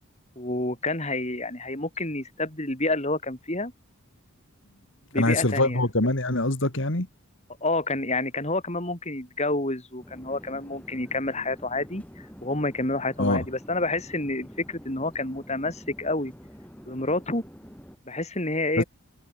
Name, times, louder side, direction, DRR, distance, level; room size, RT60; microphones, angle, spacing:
voice 1, 0.4-3.7 5.1-5.8 7.6-12.0 12.4-16.3 16.8-17.4 18.1-18.8, left 2 dB, 30° left, 5.0 m, -28 dB
voice 2, 5.1-7.1 13.2-13.4 18.8-18.9, left 2 dB, 55° left, 2.8 m, -24 dB
Conversation / Chatter / Fixed-wing aircraft airplane, 10.0-18.0, equal, 5° left, 5.8 m, -47 dB
head